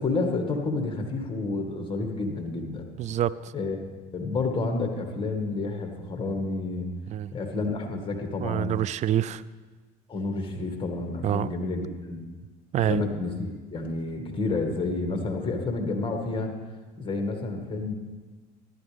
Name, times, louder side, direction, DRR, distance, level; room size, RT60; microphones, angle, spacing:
voice 1, 0.0-2.9 3.5-3.8 4.1-6.9 7.3-8.8 10.1-12.2 12.7-16.5 17.0-17.9, left 3 dB, 25° left, 4 dB, 1.9 m, -30 dB
voice 2, 3.0-3.5 7.1-7.3 8.4-9.4 11.2-11.5 12.7-13.0, right 11 dB, 35° right, 18 dB, 0.4 m, -26 dB
14.0 x 11.5 x 3.5 m, 1.3 s
supercardioid pair, 85°, 20 cm